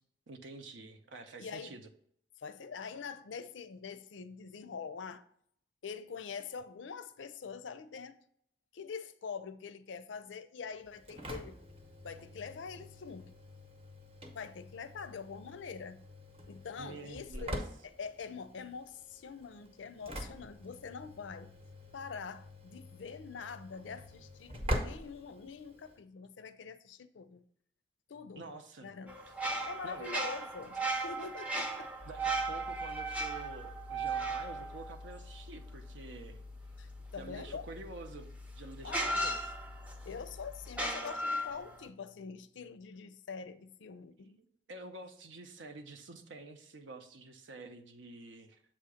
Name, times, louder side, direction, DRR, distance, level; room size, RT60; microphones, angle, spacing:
voice 1, 0.3-1.9 16.8-17.6 28.4-28.9 29.8-30.2 32.1-36.4 37.2-39.5 44.4-48.6, right 3 dB, 80° right, 0.7 m, -48 dB
voice 2, 1.4-1.8 2.4-5.2 5.8-8.2 8.7-11.6 12.0-13.3 14.3-16.0 16.5-21.5 21.9-27.4 28.1-28.5 28.8-29.2 29.6-31.9 36.8-37.7 38.8-39.4 40.1-44.4, left 5 dB, 80° left, 0.5 m, -44 dB
Engine / Slam, 10.8-26.0, equal, 30° right, 0.8 m, -44 dB
sound 1, 29.1-35.7 38.0-38.1 38.9-40.1 40.7-41.8, right 2 dB, 5° right, 0.5 m, -36 dB
sound 2, 32.0-40.9, left 3 dB, 55° right, 0.9 m, -49 dB
7.4 x 2.8 x 4.9 m
head